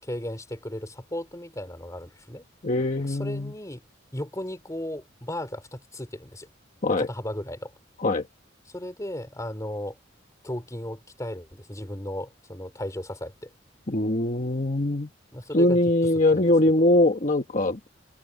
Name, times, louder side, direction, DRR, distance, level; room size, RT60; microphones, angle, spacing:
voice 1, 0.0-2.5 3.1-3.8 4.1-6.5 7.0-7.7 8.7-10.0 10.4-13.5 15.3-15.8 16.3-16.5, left 1 dB, 15° left, 3.9 m, -35 dB
voice 2, 2.6-3.5 6.8-7.1 8.0-8.3 13.9-15.1 15.5-17.8, left 1 dB, 40° left, 1.3 m, -22 dB
head